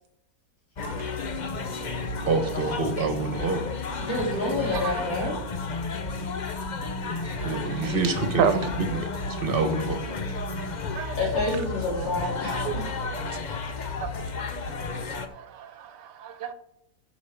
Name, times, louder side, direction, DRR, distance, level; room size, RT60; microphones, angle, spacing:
sound 1, 0.8-15.3, left 3 dB, 50° left, 0.5 m, -32 dB
voice 1, 2.3-3.6 7.4-8.4 8.8-10.0, right 3 dB, 35° right, 1.5 m, -27 dB
voice 2, 4.0-5.3 11.2-12.8, left 2 dB, 90° left, 4.3 m, -28 dB
voice 3, 4.7-5.0 7.2-8.0 8.4-8.7 10.9-11.2 12.6-12.8 14.0-14.8 15.2-16.5, right 8 dB, 70° right, 1.5 m, -31 dB
11.5 x 7.5 x 4.9 m
omnidirectional pair, 1.9 m